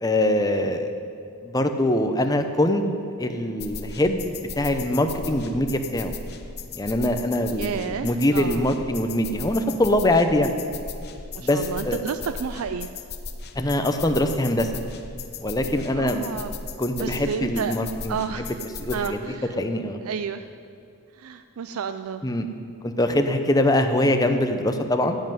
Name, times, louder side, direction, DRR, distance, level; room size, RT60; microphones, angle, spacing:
voice 1, 0.0-0.9 1.4-2.8 3.2-4.3 4.6-6.1 6.7-10.5 11.4-12.0 13.6-14.7 15.4-16.4 16.8-18.5 18.8-19.2 19.6-20.0 22.2-22.5 22.8-25.2, left 1 dB, 15° left, 6 dB, 0.7 m, -23 dB
sound 1, 3.6-19.1, left 4 dB, 50° left, 0.8 m, -37 dB
voice 2, 7.6-8.6 11.3-12.9 15.9-16.5 16.9-17.8 18.1-18.6 18.9-19.5 20.1-20.5 21.1-22.2, right 6 dB, 85° right, 9 dB, 0.4 m, -31 dB
15.0 x 5.6 x 9.3 m, 2.4 s
head